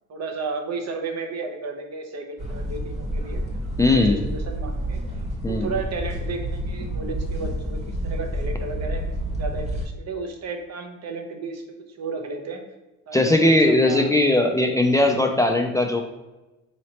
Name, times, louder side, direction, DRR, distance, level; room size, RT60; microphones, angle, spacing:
voice 1, 0.1-3.4 3.8-5.0 5.5-9.0 9.4-11.6 12.0-12.6 13.1-14.1, right 4 dB, 60° right, 3 dB, 0.8 m, -33 dB
sound 1, 2.4-9.9, equal, 20° right, 1.1 m, -29 dB
voice 2, 3.8-4.2 5.4-5.7 13.1-16.0, left 2 dB, 10° left, 3 dB, 0.3 m, -19 dB
4.0 x 3.1 x 2.8 m, 1.1 s
cardioid pair, 90°, 30 cm